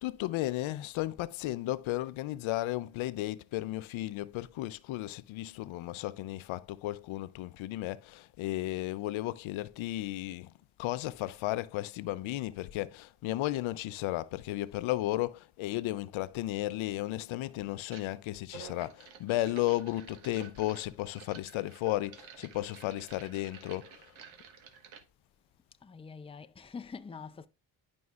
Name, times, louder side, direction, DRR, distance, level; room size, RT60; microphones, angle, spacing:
voice 1, 0.0-10.5 10.8-24.1, left 16 dB, 85° left, 0.6 m, -34 dB
sound 1, 16.5-16.7 17.8-18.1 18.4-25.0, right 6 dB, 85° right, 1.4 m, -51 dB
voice 2, 25.8-27.5, left 5 dB, 15° left, 0.5 m, -45 dB
11.0 x 5.3 x 2.4 m
cardioid pair, 90°, 46 cm